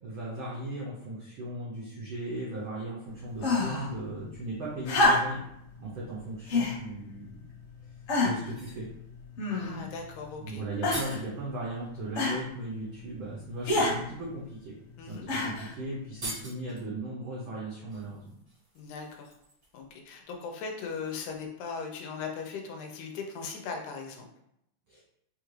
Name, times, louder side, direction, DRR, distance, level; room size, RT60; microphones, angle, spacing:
voice 1, 0.0-7.4 8.2-8.9 10.4-14.8 15.1-18.4 24.9-25.0, right 2 dB, 80° right, -5 dB, 1.1 m, -37 dB
sound 1, 3.4-3.9 4.8-5.5 6.5-6.8 7.5-7.6 8.1-8.5 9.4-9.9 10.8-11.2 12.2-12.4 13.6-14.0 15.3-15.7 16.8-16.9, left 2 dB, 60° left, 1.6 m, -26 dB
sound 2, 8.4-8.9 10.3-10.4 10.6-11.3 12.7-12.8 13.4-13.7 14.6-14.7 15.0-15.2 15.4-15.5 16.0-16.8 17.9-19.9 20.2-20.3, right 1 dB, 65° right, 0.5 m, -43 dB
voice 2, 9.5-10.6 15.0-15.3 18.8-19.3 19.7-24.3, left 5 dB, 85° left, 2 dB, 2.2 m, -38 dB
5.1 x 2.4 x 3.1 m, 0.76 s
omnidirectional pair, 3.5 m